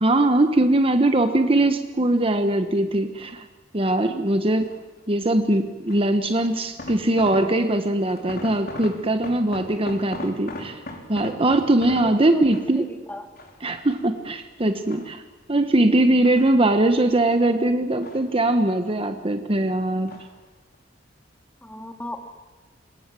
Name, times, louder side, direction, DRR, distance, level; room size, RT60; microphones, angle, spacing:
voice 1, 0.0-3.5 3.7-4.7 5.1-10.8 11.1-12.9 13.6-15.2 15.5-20.2, right 1 dB, 30° right, 7 dB, 1.3 m, -21 dB
sound 1, 4.6-5.0 5.9-7.8 8.1-12.9 13.4-14.2 14.7-15.5 16.0-17.3 17.6-18.8 19.0-19.7 20.1-20.4 20.7-20.8, left 1 dB, 55° left, 4.0 m, -39 dB
voice 2, 11.9-13.3 21.6-22.2, left 1 dB, 10° left, 5 dB, 2.5 m, -37 dB
27.0 x 22.0 x 7.7 m, 1.2 s
head